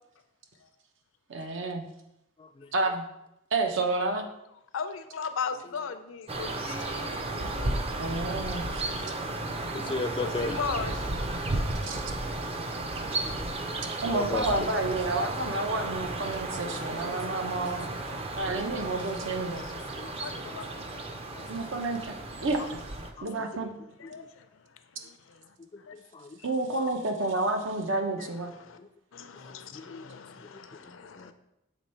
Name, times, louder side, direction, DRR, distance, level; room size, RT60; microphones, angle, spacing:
voice 1, 1.3-1.9 2.7-3.0 3.5-4.3 8.0-8.9 11.8-12.0 14.0-17.9 18.4-19.6 21.5-22.1 22.4-22.8 23.2-23.7 26.4-28.5, right 2 dB, 70° right, 4 dB, 0.8 m, -30 dB
voice 2, 4.7-7.7 10.2-11.1 19.6-19.7 20.2-20.7 23.3-23.7 24.1-24.5 25.0-25.2 25.9-26.0 28.2-28.3 28.6-28.8 29.1-31.3, left 5 dB, 85° left, 10 dB, 0.5 m, -37 dB
sound 1, 6.3-23.1, right 2 dB, 30° right, 0.5 m, -34 dB
voice 3, 9.7-10.6 13.2-13.8 14.1-14.6 16.6-16.8 17.1-17.2 18.5-18.6 20.0-20.1 20.4-20.6 21.3-21.4 23.2-23.3 24.2-24.3 25.7-26.4 28.8-28.9 29.4-29.8 30.4-31.3, left 3 dB, 25° left, 9 dB, 0.3 m, -37 dB
7.1 x 3.1 x 4.3 m, 0.86 s
head